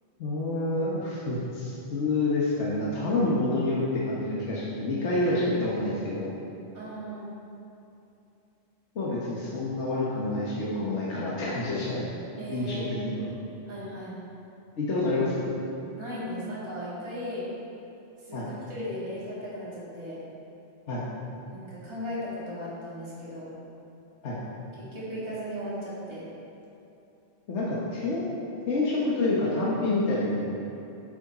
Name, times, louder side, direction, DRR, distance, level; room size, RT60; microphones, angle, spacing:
voice 1, 0.2-6.3 8.9-12.1 12.5-13.3 14.8-15.6 18.3-18.5 20.9-21.0 24.2-24.4 27.5-28.2 28.7-30.4, left 2 dB, 75° left, -7 dB, 1.4 m, -28 dB
voice 2, 6.7-7.3 12.4-13.0 13.7-14.2 16.0-17.4 18.2-20.2 21.5-23.5 24.8-26.3, equal, 25° right, -9 dB, 1.9 m, -37 dB
9.9 x 6.3 x 4.1 m, 2.8 s
omnidirectional pair, 1.2 m